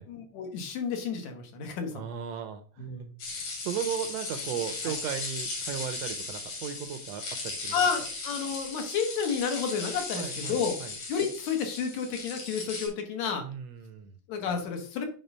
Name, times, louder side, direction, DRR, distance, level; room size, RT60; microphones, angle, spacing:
voice 1, 0.1-2.0 2.8-3.2 4.8-4.9 7.7-10.7 11.1-13.4 14.3-15.0, left 6 dB, 70° left, 4 dB, 2.5 m, -31 dB
voice 2, 1.9-7.8 10.1-10.9 13.4-14.1, right 9 dB, 75° right, 8 dB, 1.6 m, -36 dB
sound 1, 3.2-12.9, left 3 dB, 85° left, 4.0 m, -37 dB
8.0 x 3.9 x 5.4 m, 0.42 s
omnidirectional pair, 3.4 m